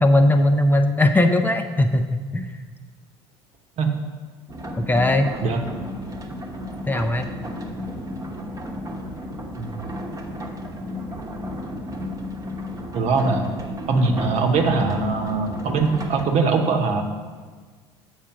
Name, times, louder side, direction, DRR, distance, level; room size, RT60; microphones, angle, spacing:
voice 1, 0.0-2.5 4.8-5.3 6.9-7.3, left 1 dB, 15° left, 6 dB, 0.6 m, -19 dB
sound 1, 4.5-16.3, left 1 dB, 25° right, 1.1 m, -33 dB
voice 2, 12.9-13.5 13.9-17.0, right 4 dB, 55° right, 4 dB, 1.1 m, -21 dB
7.3 x 4.8 x 5.8 m, 1.5 s
hypercardioid pair, 75°, 14 cm